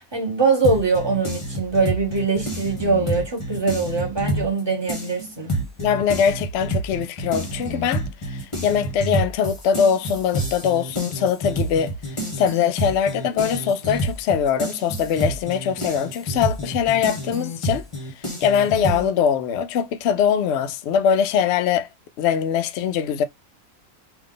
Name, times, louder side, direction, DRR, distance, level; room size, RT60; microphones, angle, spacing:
voice 1, 0.0-5.6, right 4 dB, 20° right, 1.1 m, -22 dB
sound 1, 0.6-4.6 4.9-19.1, right 1 dB, 25° left, 1.0 m, -28 dB
voice 2, 5.8-17.8 18.2-21.9 22.2-23.2, left 8 dB, 65° left, 0.6 m, -22 dB
3.5 x 2.6 x 3.7 m
omnidirectional pair, 1.6 m